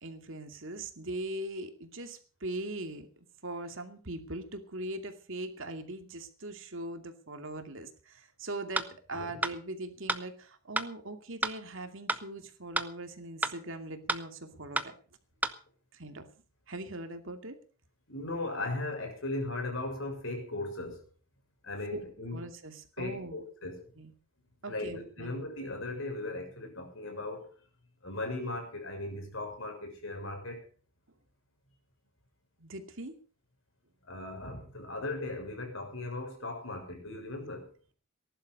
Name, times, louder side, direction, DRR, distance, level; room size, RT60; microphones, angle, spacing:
voice 1, 0.0-3.1 3.4-15.0 15.9-16.3 16.7-17.6 21.9-22.0 22.3-23.4 24.0-24.1 24.6-25.3 32.6-33.2, right 1 dB, 60° right, 2.5 m, -40 dB
sound 1, 8.8-8.9 9.4-9.6 10.1-10.2 10.8-10.9 11.4-11.6 12.1-12.2 12.8-12.9 13.4-13.6 14.1-14.2 14.8-14.9 15.4-15.6, right 2 dB, 5° right, 0.9 m, -30 dB
voice 2, 18.1-21.0 21.6-22.4 23.0-23.9 24.7-27.6 28.0-30.6 34.1-37.7, left 2 dB, 60° left, 6.5 m, -37 dB
19.0 x 11.5 x 5.5 m
head